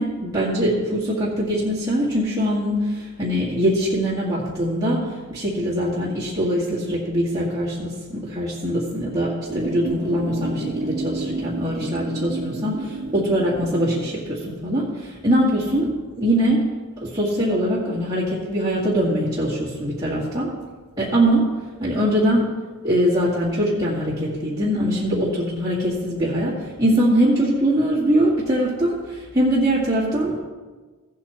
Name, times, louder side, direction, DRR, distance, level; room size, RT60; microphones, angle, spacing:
voice 1, 0.0-16.7 17.0-20.5 21.0-21.5 21.8-22.5 22.8-30.4, equal, 20° right, -8 dB, 1.9 m, -22 dB
sound 1, 9.5-14.5, right 2 dB, 40° right, 1.6 m, -31 dB
15.5 x 8.3 x 3.0 m, 1.3 s
head